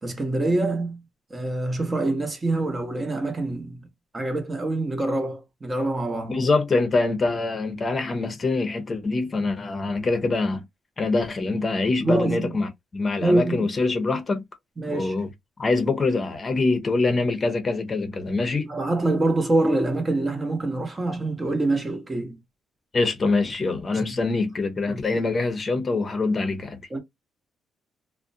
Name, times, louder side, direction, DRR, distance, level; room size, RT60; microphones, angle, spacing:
voice 1, 0.0-1.0 1.3-3.9 4.1-6.4 12.0-12.6 13.2-13.6 14.8-15.1 18.7-22.4 23.9-24.0 24.9-25.0 26.9-27.0, right 2 dB, 25° right, 0.8 m, -25 dB
voice 2, 6.3-10.6 11.0-14.4 14.9-15.3 15.6-18.7 22.9-26.8, left 3 dB, 35° left, 0.7 m, -24 dB
2.4 x 2.1 x 2.5 m
cardioid pair, 90°, 0 cm